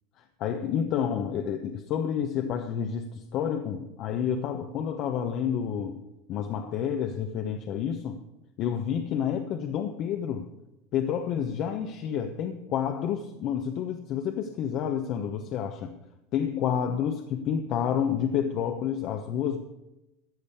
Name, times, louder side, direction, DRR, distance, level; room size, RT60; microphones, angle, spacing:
voice 1, 0.2-6.0 6.3-8.2 8.6-10.5 10.9-15.9 16.3-19.6, left 8 dB, 50° left, 1.0 m, -29 dB
14.0 x 5.2 x 8.5 m
supercardioid pair, 130°, 0 cm